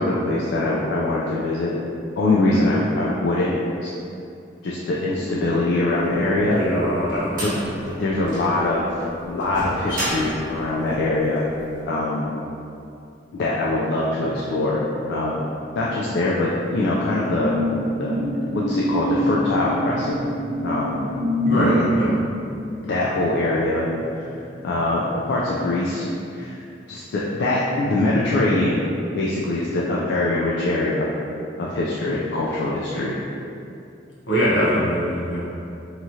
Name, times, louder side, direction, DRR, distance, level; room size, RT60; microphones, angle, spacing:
voice 1, 0.0-1.7 2.2-3.5 3.8-3.9 4.6-6.6 7.4-7.5 8.0-8.9 9.2-11.5 11.9-12.3 13.3-15.4 15.8-17.6 18.0-18.2 18.5-20.2 20.6-21.0 21.5-21.9 22.8-23.8 24.1-24.3 24.6-26.6 26.9-28.8 29.1-31.1 31.6-33.2, left 2 dB, 65° left, -5 dB, 0.3 m, -23 dB
sound 1, 6.3-11.7, equal, 45° right, 0.8 m, -32 dB
voice 2, 6.4-7.7 21.5-22.1 34.3-35.4, equal, 80° left, -8 dB, 0.9 m, -22 dB
sound 2, 16.4-25.4 25.7-26.0, equal, 25° right, 0.5 m, -26 dB
2.9 x 2.4 x 2.7 m, 2.6 s
head